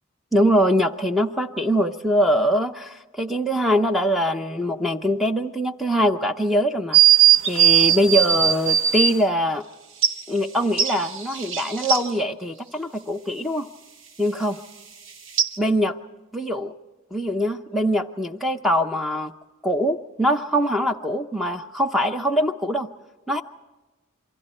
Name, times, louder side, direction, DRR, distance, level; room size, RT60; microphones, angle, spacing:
voice 1, 0.3-7.0 7.5-9.6 10.3-13.7 14.2-14.6 15.6-16.0 16.3-16.7 17.1-19.3 19.6-22.9 23.3-23.4, equal, ahead, 5 dB, 0.7 m, -22 dB
sound 1, 6.9-9.2 10.0-10.1 10.8-12.0 15.4-15.5, right 10 dB, 60° right, 1.2 m, -17 dB
28.0 x 24.0 x 4.4 m, 1.2 s
head